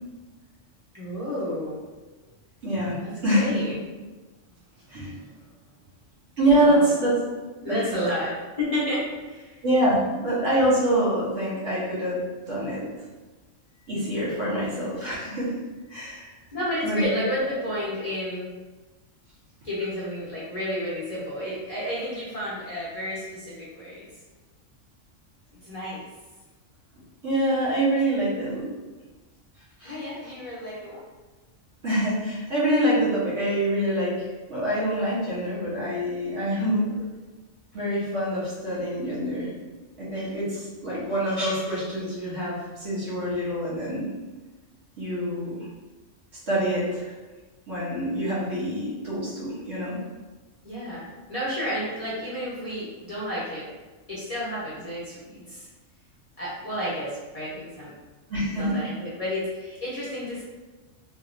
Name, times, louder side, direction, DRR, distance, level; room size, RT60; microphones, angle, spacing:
voice 1, 0.9-1.8 3.0-3.7 5.0-5.3 6.5-6.9 7.6-9.6 16.5-18.5 19.6-24.1 25.6-26.1 29.8-31.0 36.9-37.0 50.6-53.7 54.1-55.7 56.4-57.9 58.5-60.4, equal, 30° left, -10 dB, 0.9 m, -31 dB
voice 2, 2.6-3.8 4.9-5.2 6.4-7.1 7.6-7.8 9.6-12.2 12.4-12.8 13.9-15.5 15.9-16.2 16.8-17.0 27.2-28.6 29.8-30.0 31.8-36.9 37.7-39.5 40.0-44.1 45.0-45.6 46.5-47.1 47.7-50.0 58.3-58.8, right 1 dB, 65° right, -9 dB, 1.4 m, -25 dB
3.3 x 2.8 x 2.5 m, 1.2 s
omnidirectional pair, 1.3 m